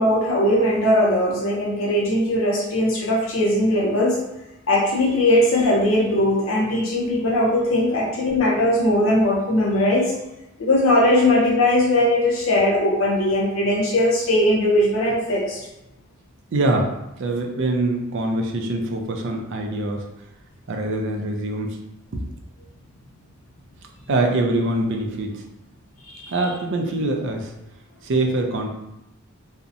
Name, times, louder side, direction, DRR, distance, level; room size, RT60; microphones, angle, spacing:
voice 1, 0.0-4.2 4.7-10.1 10.6-15.6 26.0-26.4, left 1 dB, 75° left, -3 dB, 0.5 m, -19 dB
voice 2, 16.5-16.9 17.2-20.1 20.7-21.8 22.1-22.2 24.1-25.3 26.3-27.5 28.0-28.7, right 2 dB, 60° right, 3 dB, 0.4 m, -23 dB
2.6 x 2.0 x 2.5 m, 0.90 s
head